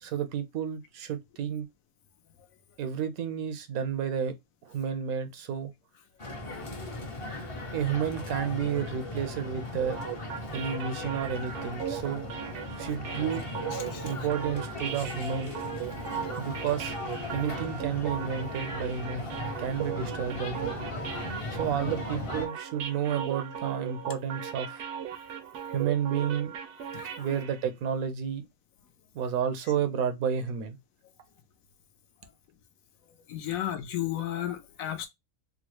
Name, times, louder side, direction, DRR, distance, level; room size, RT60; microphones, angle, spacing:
voice 1, 0.0-1.7 2.8-4.3 4.6-5.7 7.7-10.0 10.5-12.2 12.8-13.4 14.0-15.5 16.4-17.0 17.3-20.8 21.5-24.9 25.7-26.5 27.2-28.4 29.1-30.8, right 8 dB, 85° right, 1.1 m, -31 dB
sound 1, 6.2-22.5, left 2 dB, 35° left, 0.5 m, -37 dB
sound 2, 9.8-27.7, right 8 dB, 65° right, 0.8 m, -38 dB
voice 2, 26.9-27.4 33.3-35.1, left 12 dB, 75° left, 1.0 m, -33 dB
3.6 x 2.1 x 3.0 m
omnidirectional pair, 1.5 m